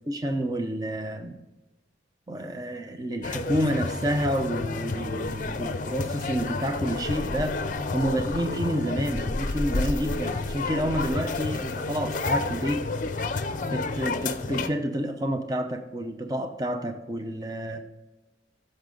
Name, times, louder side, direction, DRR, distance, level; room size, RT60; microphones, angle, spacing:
voice 1, 0.1-1.4 2.3-7.6 7.9-12.8 13.7-17.9, equal, 20° right, 6 dB, 0.7 m, -29 dB
sound 1, 3.2-14.7, left 3 dB, 45° left, 0.6 m, -30 dB
14.5 x 6.6 x 3.8 m, 1.1 s
head